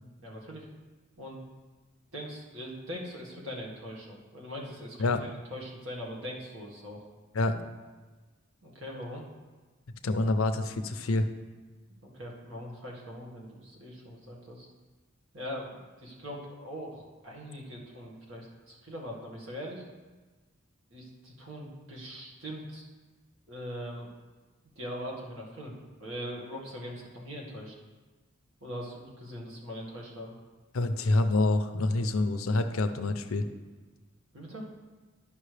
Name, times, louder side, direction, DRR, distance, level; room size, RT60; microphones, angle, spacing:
voice 1, 0.2-0.7 1.2-1.4 2.1-7.0 8.6-9.2 12.0-14.7 15.3-19.8 20.9-22.9 23.5-24.1 24.8-25.7 26.0-27.8 28.6-30.4 34.3-34.7, equal, 75° right, -2 dB, 1.7 m, -41 dB
voice 2, 10.0-11.3 30.7-33.5, left 2 dB, 85° left, 9 dB, 0.6 m, -27 dB
11.5 x 5.4 x 3.3 m, 1.3 s
head